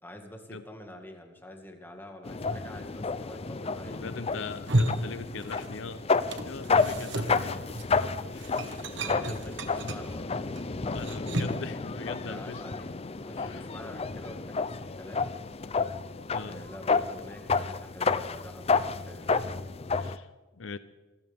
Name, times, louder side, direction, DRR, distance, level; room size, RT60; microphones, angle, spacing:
voice 1, 0.0-4.1 7.3-7.6 8.6-10.3 12.1-15.3 16.4-19.3, left 1 dB, 10° left, 3 dB, 1.9 m, -46 dB
sound 1, 2.2-20.2, left 4 dB, 30° left, 0.5 m, -31 dB
voice 2, 3.9-6.0 6.4-7.6 8.3-8.6 9.2-9.4 10.9-12.6 13.4-13.7 16.3-16.6 20.0-20.3 20.6-20.8, left 4 dB, 75° left, 13 dB, 0.7 m, -41 dB
sound 2, 4.5-5.9 6.1-11.7, right 1 dB, 65° right, 1.4 m, -33 dB
25.0 x 14.5 x 3.6 m, 1.2 s
head